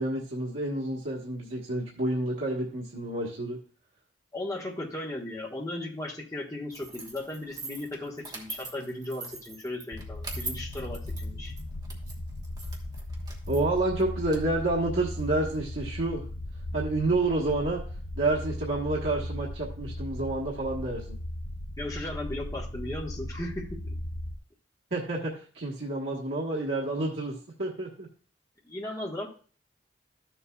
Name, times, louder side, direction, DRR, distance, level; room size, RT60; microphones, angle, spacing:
voice 1, 0.0-3.6 13.5-16.2 16.7-17.8 18.1-21.2 24.9-28.1, right 2 dB, 75° right, -4 dB, 1.3 m, -29 dB
voice 2, 4.3-11.5 21.8-24.0 28.6-29.3, left 1 dB, 20° left, -3 dB, 1.3 m, -36 dB
sound 1, 6.7-15.6, right 3 dB, 20° right, 1.2 m, -43 dB
sound 2, 9.9-24.4, left 1 dB, 70° left, 0.6 m, -37 dB
13.0 x 6.9 x 2.3 m, 0.41 s
head